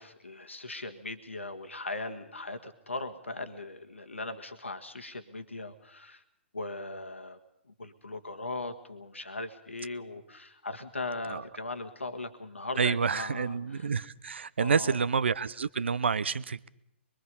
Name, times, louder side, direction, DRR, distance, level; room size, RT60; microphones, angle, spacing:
voice 1, 0.0-6.2 6.5-7.4 7.8-13.9 14.6-15.0, left 2 dB, 85° left, 6 dB, 1.7 m, -39 dB
voice 2, 12.8-16.7, right 5 dB, 70° right, 18 dB, 0.7 m, -28 dB
23.5 x 23.0 x 5.5 m, 0.80 s
figure-of-eight pair, 120°, 6 cm